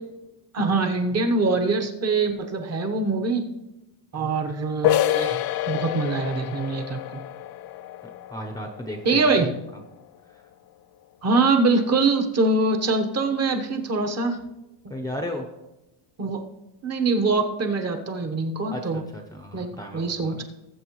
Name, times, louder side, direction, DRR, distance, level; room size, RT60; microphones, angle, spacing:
voice 1, 0.5-3.4 4.1-5.4 5.7-7.2 9.0-9.5 11.2-14.4 16.2-16.4 16.8-19.0 19.5-20.4, right 3 dB, 30° right, 5 dB, 1.2 m, -23 dB
sound 1, 4.8-10.3, left 14 dB, 50° left, 0.5 m, -28 dB
voice 2, 8.3-9.2 14.9-15.4 18.7-20.4, left 1 dB, 5° left, 4 dB, 0.8 m, -34 dB
19.5 x 7.6 x 3.1 m, 0.97 s
cardioid pair, 155°, 49 cm